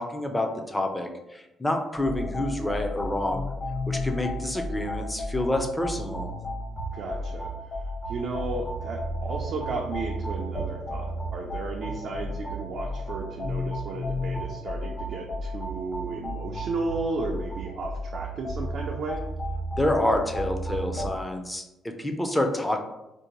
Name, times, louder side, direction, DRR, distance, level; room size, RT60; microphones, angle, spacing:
voice 1, 0.0-3.5 3.9-6.3 19.8-22.8, left 1 dB, 10° left, 4 dB, 0.4 m, -28 dB
sound 1, 1.9-21.1, equal, 50° left, 1.1 m, -33 dB
voice 2, 6.9-7.8 8.1-19.2, right 3 dB, 60° right, 0 dB, 0.3 m, -34 dB
2.6 x 2.1 x 2.9 m, 0.95 s
cardioid pair, 90°, 0 cm